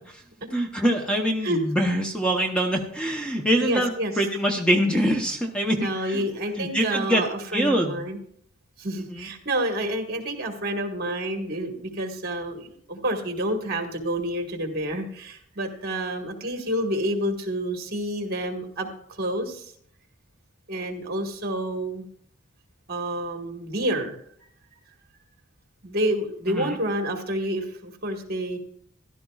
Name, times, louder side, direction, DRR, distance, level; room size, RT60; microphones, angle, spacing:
voice 1, 0.5-6.2 6.6-7.2 7.5-8.0 9.0-9.3 26.5-26.8, equal, 5° left, 2 dB, 0.8 m, -24 dB
voice 2, 3.6-4.1 5.8-8.2 8.8-18.9 19.2-19.7 20.7-22.0 22.9-24.2 25.8-28.6, right 1 dB, 50° right, 4 dB, 1.6 m, -29 dB
14.5 x 12.0 x 2.4 m, 0.64 s
head